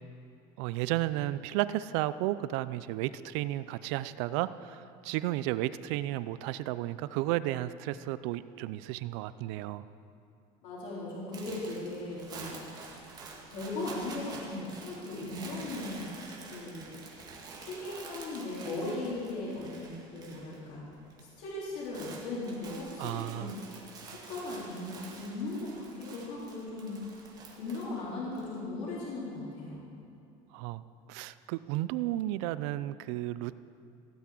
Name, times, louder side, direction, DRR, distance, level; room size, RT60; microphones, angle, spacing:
voice 1, 0.6-9.8 23.0-23.5 30.5-30.8 31.1-33.6, right 15 dB, 75° right, 15 dB, 0.5 m, -33 dB
voice 2, 10.6-12.6 12.9-13.1 13.5-16.1 16.5-17.0 17.6-20.8 21.4-23.6 24.1-27.0 27.6-29.8, left 2 dB, 60° left, -6 dB, 3.3 m, -38 dB
sound 1, 11.3-20.6 20.9-21.3 21.6-28.5, right 3 dB, 25° right, 1.8 m, -48 dB
16.5 x 6.0 x 8.4 m, 2.7 s
cardioid pair, 160°, 15 cm